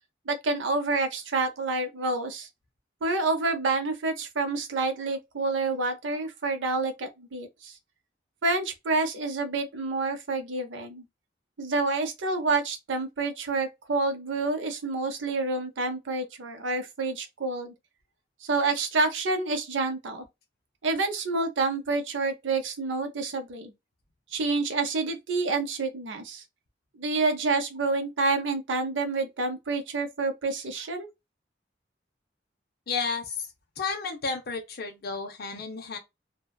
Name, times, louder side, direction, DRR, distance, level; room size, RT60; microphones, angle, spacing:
voice 1, 0.3-2.5 3.0-7.7 8.4-11.1 11.6-17.7 18.4-20.3 20.8-23.7 24.3-26.4 26.9-31.1, right 3 dB, 90° right, 0.6 m, -28 dB
voice 2, 32.9-33.4 33.8-36.0, left 4 dB, 55° left, 0.6 m, -32 dB
2.7 x 2.2 x 2.2 m
head